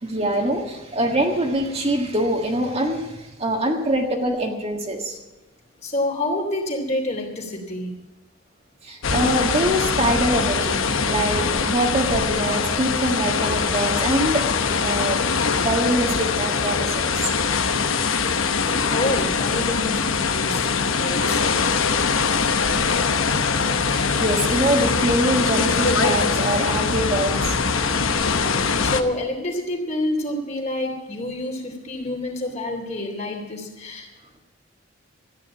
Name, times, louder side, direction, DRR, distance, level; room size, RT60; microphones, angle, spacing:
voice 1, 0.0-5.2 8.8-15.2 15.6-17.2 23.9-27.6, right 1 dB, 30° right, 2 dB, 1.6 m, -24 dB
voice 2, 5.8-8.0 18.9-21.5 28.3-28.6 28.8-34.1, left 1 dB, 35° left, 1 dB, 2.9 m, -28 dB
sound 1, 9.0-29.0, left 5 dB, 75° left, 0.9 m, -22 dB
14.0 x 9.7 x 9.0 m, 1.0 s
head